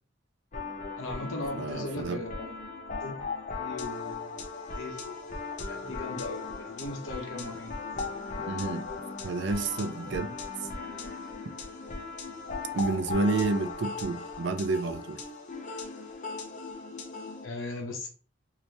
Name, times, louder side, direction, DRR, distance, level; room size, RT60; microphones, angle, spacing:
sound 1, 0.5-17.5, left 4 dB, 40° left, 0.6 m, -38 dB
voice 1, 1.0-2.6 3.0-3.2 3.6-4.4 4.7-7.8 17.4-18.1, left 2 dB, 80° left, 1.0 m, -38 dB
voice 2, 1.6-2.2 8.5-8.9 9.2-10.4 10.6-10.7 12.7-15.2, right 3 dB, 60° right, 0.4 m, -30 dB
3.2 x 2.8 x 2.8 m
head